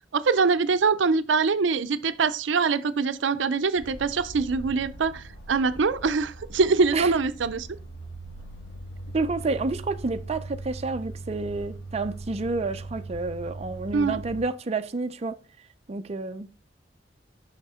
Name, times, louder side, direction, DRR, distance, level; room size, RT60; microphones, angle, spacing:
voice 1, 0.1-7.7 13.9-14.2, right 4 dB, 80° right, 0.5 m, -24 dB
sound 1, 3.7-14.4, right 2 dB, 65° left, 3.0 m, -40 dB
voice 2, 9.1-15.4 15.9-16.5, right 3 dB, 35° right, 0.5 m, -29 dB
6.8 x 5.8 x 3.6 m
head